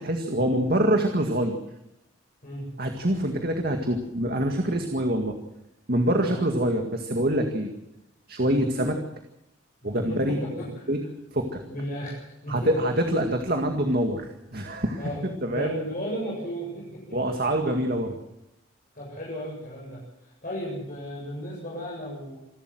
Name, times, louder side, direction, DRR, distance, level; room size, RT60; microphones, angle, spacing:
voice 1, 0.0-1.6 2.8-5.4 5.9-7.7 8.3-9.0 9.8-10.4 10.9-11.0 11.3-11.6 12.5-15.7 17.1-18.2, right 1 dB, 50° right, 4 dB, 2.1 m, -25 dB
voice 2, 9.8-10.9 11.6-12.9 15.0-17.2 18.9-22.4, equal, 45° left, -5 dB, 8.0 m, -35 dB
27.5 x 13.0 x 7.8 m, 0.86 s
head